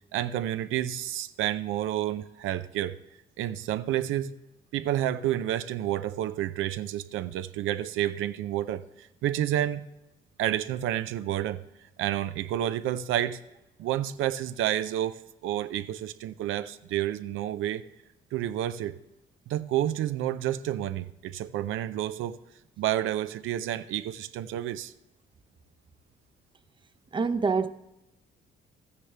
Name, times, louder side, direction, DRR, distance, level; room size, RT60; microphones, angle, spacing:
voice 1, 0.1-3.0 3.4-4.3 4.7-9.9 10.4-11.6 12.0-13.4 13.8-17.8 18.3-19.0 19.5-22.4 22.8-24.9, right 12 dB, 85° right, 0.5 m, -30 dB
voice 2, 27.1-27.7, right 4 dB, 25° right, 0.6 m, -25 dB
13.5 x 9.8 x 3.3 m
cardioid pair, 90°, 20 cm